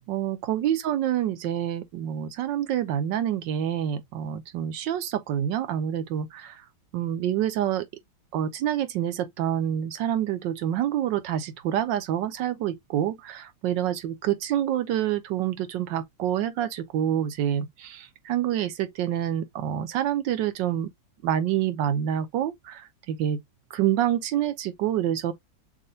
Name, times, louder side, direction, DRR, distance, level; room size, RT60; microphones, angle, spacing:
voice 1, 0.1-6.6 6.9-7.9 8.3-20.9 21.2-22.8 23.1-23.4 23.7-25.3, right 10 dB, 75° right, 1.4 m, -27 dB
6.6 x 2.3 x 2.8 m
omnidirectional pair, 2.0 m